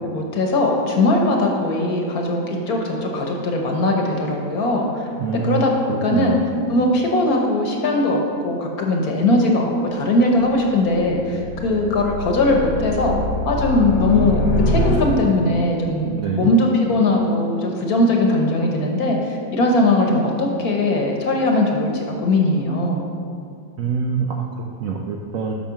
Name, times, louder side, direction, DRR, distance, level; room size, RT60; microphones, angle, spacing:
voice 1, 0.0-4.9 5.4-5.7 6.0-6.4 6.7-13.2 13.5-14.4 14.7-19.2 19.5-21.9 22.2-23.0, left 2 dB, 55° left, 0 dB, 1.5 m, -19 dB
voice 2, 5.2-6.3 14.5-15.0 16.1-16.5 23.8-25.5, right 6 dB, 70° right, 0 dB, 0.8 m, -25 dB
sound 1, 10.3-15.6, left 1 dB, 90° left, 2.2 m, -25 dB
8.4 x 5.9 x 6.0 m, 2.3 s
omnidirectional pair, 2.1 m